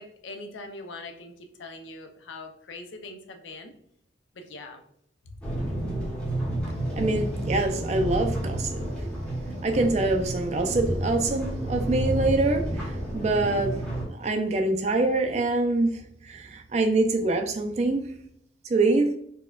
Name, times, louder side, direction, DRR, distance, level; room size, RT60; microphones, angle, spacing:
voice 1, 0.0-3.7 4.3-4.8 5.2-5.3, left 2 dB, 85° left, 0.5 m, -42 dB
sound 1, 5.4-14.0, right 1 dB, 5° left, 0.7 m, -30 dB
voice 2, 7.0-8.8 9.6-13.7 14.1-18.1 18.6-19.1, right 2 dB, 35° right, 0.4 m, -25 dB
4.2 x 2.2 x 2.3 m
head